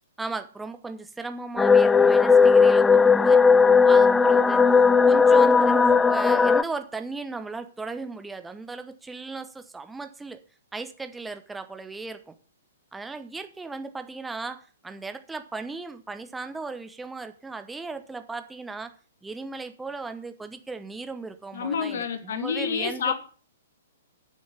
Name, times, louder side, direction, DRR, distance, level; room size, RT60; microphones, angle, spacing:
voice 1, 0.2-3.4 3.8-10.4 10.7-12.3 12.9-18.9 19.2-23.1, right 3 dB, 5° right, 9 dB, 1.0 m, -36 dB
sound 1, 1.6-6.6, left 5 dB, 10° left, 0.4 m, -17 dB
voice 2, 21.5-23.1, left 6 dB, 60° left, 7 dB, 2.2 m, -28 dB
9.6 x 7.2 x 7.1 m, 0.40 s
figure-of-eight pair, 115°, 0 cm